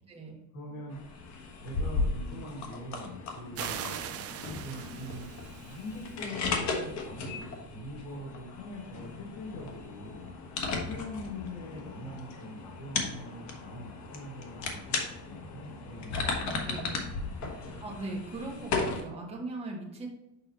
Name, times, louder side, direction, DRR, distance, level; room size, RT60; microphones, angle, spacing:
voice 1, 0.0-0.4 16.6-16.9 17.8-20.1, right 2 dB, 15° right, -3 dB, 1.6 m, -39 dB
voice 2, 0.5-1.0 1.6-3.8 4.5-5.4 5.7-10.3 10.8-16.2 16.7-17.5, left 1 dB, 85° left, -3 dB, 1.9 m, -43 dB
sound 1, 0.9-19.0, left 3 dB, 50° left, 1.3 m, -36 dB
sound 2, 3.5-6.1, right 9 dB, 40° right, 0.6 m, -40 dB
6.7 x 5.4 x 3.0 m, 0.90 s
cardioid pair, 160°, 36 cm